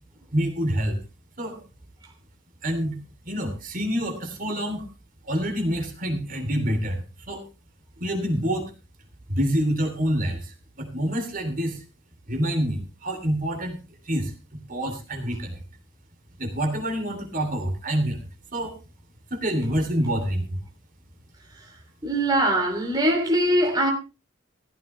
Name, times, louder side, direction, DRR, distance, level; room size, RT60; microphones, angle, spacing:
voice 1, 0.3-1.0 1.4-1.6 2.6-3.0 3.2-4.8 5.2-7.0 7.3-7.4 8.0-8.7 9.3-11.8 12.3-13.8 14.0-15.6 16.4-18.2 18.5-18.8 19.3-20.6, equal, 45° right, 3.1 m, -27 dB
voice 2, 22.0-23.9, right 1 dB, 20° right, 3.0 m, -22 dB
15.0 x 13.5 x 3.3 m
head